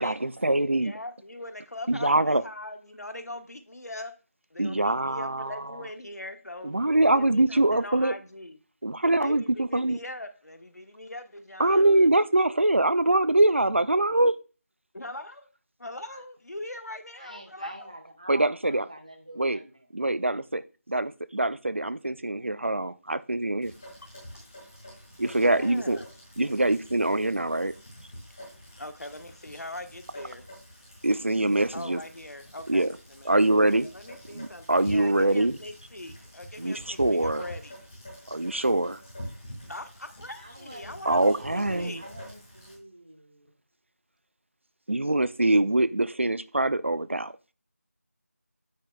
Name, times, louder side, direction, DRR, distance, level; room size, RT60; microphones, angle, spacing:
voice 1, 0.0-0.9 1.9-2.4 4.6-5.7 6.6-8.1 8.8-10.0 11.6-14.3 18.3-18.8 19.4-19.6 19.9-20.6 20.9-23.7 25.2-26.0 26.4-27.7 31.0-32.0 32.7-32.9 33.2-33.9 34.3-35.6 36.6-37.4 38.3-39.0 41.1-42.0 44.9-47.5, right 2 dB, 50° right, 0.5 m, -24 dB
voice 2, 0.8-4.1 4.5-6.7 7.1-8.6 9.2-11.8 14.9-15.5 15.8-17.9 24.3-24.4 25.5-26.1 26.6-26.7 28.8-30.4 31.7-33.6 33.9-37.7 39.7-42.0, left 1 dB, 85° left, 1.3 m, -41 dB
voice 3, 17.2-19.9 40.4-43.5, right 1 dB, 25° right, 1.0 m, -46 dB
Rain, 23.6-42.8, equal, 10° left, 2.2 m, -46 dB
9.1 x 8.7 x 2.4 m
figure-of-eight pair, 180°, 8 cm